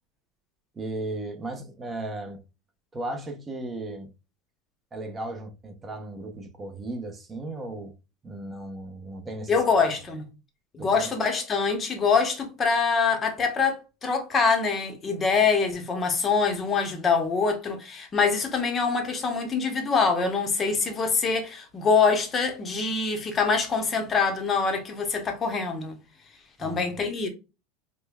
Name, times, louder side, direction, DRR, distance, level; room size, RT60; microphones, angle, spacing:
voice 1, 0.7-2.4 2.9-4.1 4.9-7.9 8.2-9.9 10.8-11.1 26.6-27.0, right 2 dB, 15° right, 0.7 m, -36 dB
voice 2, 9.5-10.2 10.7-26.0 26.6-27.3, left 5 dB, 25° left, 0.8 m, -24 dB
5.0 x 2.2 x 2.3 m
supercardioid pair, 140°, 0 cm